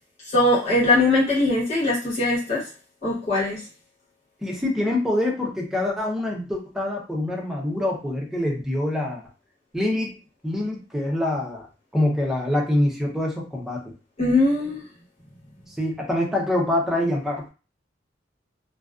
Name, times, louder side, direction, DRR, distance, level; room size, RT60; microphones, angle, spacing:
voice 1, 0.3-2.6 3.0-3.6 14.2-14.8, left 2 dB, 35° left, -7 dB, 1.1 m, -21 dB
voice 2, 4.4-9.2 9.7-10.1 10.4-11.7 11.9-13.9 15.7-17.5, left 1 dB, ahead, -2 dB, 0.6 m, -25 dB
2.3 x 2.3 x 2.4 m, 0.32 s
head